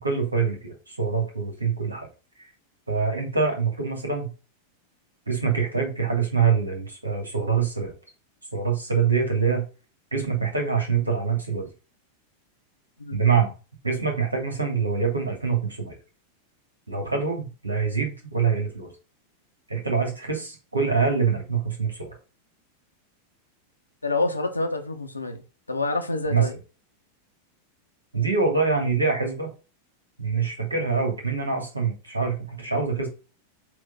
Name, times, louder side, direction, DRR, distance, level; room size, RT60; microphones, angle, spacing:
voice 1, 0.0-2.1 2.4-2.5 2.9-4.3 5.3-7.9 8.5-9.6 10.1-11.7 13.1-13.5 13.8-15.9 16.9-18.9 19.7-22.2 26.3-26.4 28.1-29.5 30.2-33.1, right 5 dB, 80° right, 2.7 m, -25 dB
voice 2, 24.0-25.4 25.7-26.5, left 2 dB, 80° left, 1.3 m, -27 dB
7.7 x 3.4 x 5.4 m
figure-of-eight pair, 90°, 0 cm